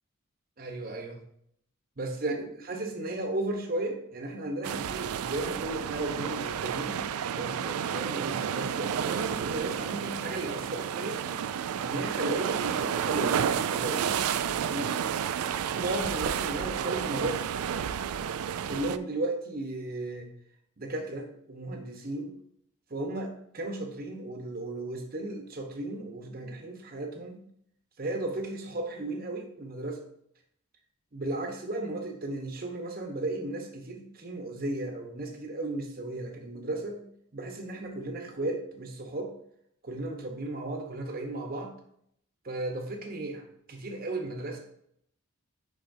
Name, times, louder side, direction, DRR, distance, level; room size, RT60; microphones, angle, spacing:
voice 1, 0.6-1.2 2.0-2.3 2.7-7.0 7.3-11.2 11.8-14.3 14.7-14.9 15.7-17.4 18.6-20.3 20.8-22.4 22.9-27.4 28.0-30.0 31.1-37.0 37.3-39.3 39.8-41.7 42.4-44.6, right 2 dB, 40° right, 3 dB, 1.0 m, -35 dB
sound 1, 4.6-19.0, right 8 dB, 80° right, 0.3 m, -31 dB
10.0 x 4.2 x 2.7 m, 0.71 s
head